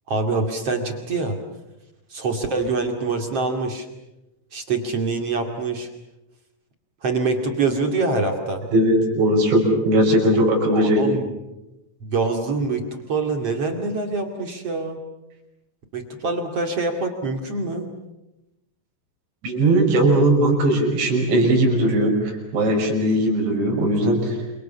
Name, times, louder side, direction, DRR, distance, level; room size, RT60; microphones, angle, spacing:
voice 1, 0.1-1.4 2.1-3.9 4.5-5.9 7.0-8.6 10.7-11.3 12.0-15.0 15.9-17.9, right 3 dB, 40° right, 4 dB, 2.6 m, -25 dB
voice 2, 8.7-11.2 19.4-24.4, right 1 dB, 70° right, 0 dB, 8.3 m, -19 dB
28.5 x 28.0 x 7.1 m, 0.97 s
omnidirectional pair, 5.5 m